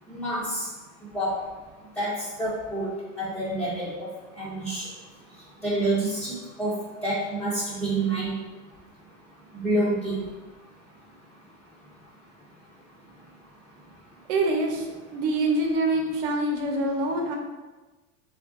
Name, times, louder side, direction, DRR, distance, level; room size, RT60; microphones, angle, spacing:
voice 1, 0.1-0.7 1.1-1.4 2.0-4.1 4.4-4.9 5.6-8.4 9.5-10.2, right 1 dB, 5° left, -9 dB, 0.4 m, -28 dB
voice 2, 14.3-17.4, right 2 dB, 60° right, 2 dB, 0.8 m, -25 dB
3.0 x 2.5 x 3.6 m, 1.2 s
supercardioid pair, 130°, 39 cm